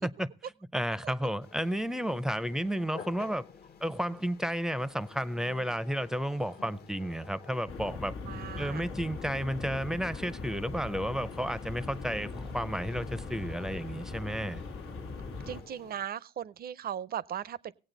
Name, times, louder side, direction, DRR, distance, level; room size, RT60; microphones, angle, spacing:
voice 1, 0.7-3.4 3.8-8.1 8.6-14.6, equal, 5° right, 0.5 m, -32 dB
sound 1, 1.4-16.1, left 6 dB, 55° left, 0.9 m, -52 dB
sound 2, 7.7-15.6, left 3 dB, 90° left, 1.4 m, -40 dB
voice 2, 8.2-8.8 13.3-13.8 15.5-17.7, right 9 dB, 50° right, 0.5 m, -38 dB
17.5 x 8.6 x 3.9 m
cardioid pair, 90°, 20 cm